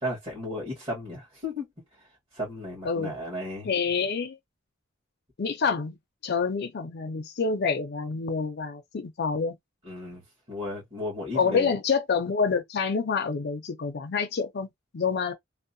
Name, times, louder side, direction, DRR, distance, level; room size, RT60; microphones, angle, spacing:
voice 1, 0.0-1.7 2.3-3.7 9.8-10.2 10.5-11.7, left 1 dB, 30° right, 1.3 m, -34 dB
voice 2, 2.8-3.2 3.6-4.4 5.4-6.0 6.2-9.6 11.3-15.3, left 5 dB, 55° left, 0.5 m, -27 dB
2.7 x 2.0 x 2.6 m
head